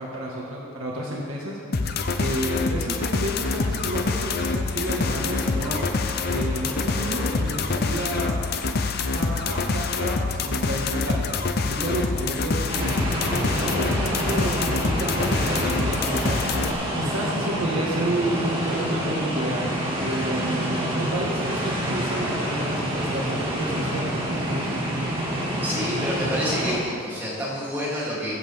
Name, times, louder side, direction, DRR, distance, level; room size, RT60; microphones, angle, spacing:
voice 1, 0.0-6.0 6.3-8.4 9.1-11.3 11.6-12.9 13.4-19.6 20.0-24.9, right 1 dB, 90° right, -4 dB, 1.9 m, -31 dB
sound 1, 1.7-16.7, left 4 dB, 50° left, 0.6 m, -26 dB
sound 2, 4.9-11.5, left 1 dB, 5° left, 2.0 m, -41 dB
sound 3, 12.7-26.8, equal, 25° right, 2.0 m, -27 dB
voice 2, 25.6-28.3, equal, 10° right, -8 dB, 3.0 m, -28 dB
21.0 x 8.1 x 3.6 m, 2.3 s
head